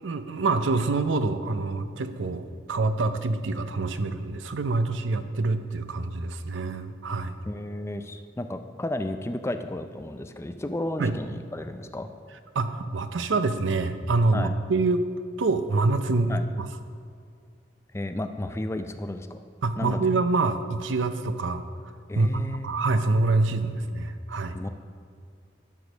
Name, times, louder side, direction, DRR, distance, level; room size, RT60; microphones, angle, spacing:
voice 1, 0.0-7.3 11.0-11.2 12.5-15.0 15.4-16.7 19.6-21.6 22.1-24.6, right 3 dB, 85° right, 10 dB, 0.6 m, -26 dB
voice 2, 7.5-12.1 14.3-14.5 16.3-16.4 17.9-19.4 19.8-20.0 22.1-22.7 24.5-24.7, left 1 dB, 15° left, 8 dB, 0.4 m, -33 dB
12.0 x 5.1 x 6.1 m, 2.3 s
head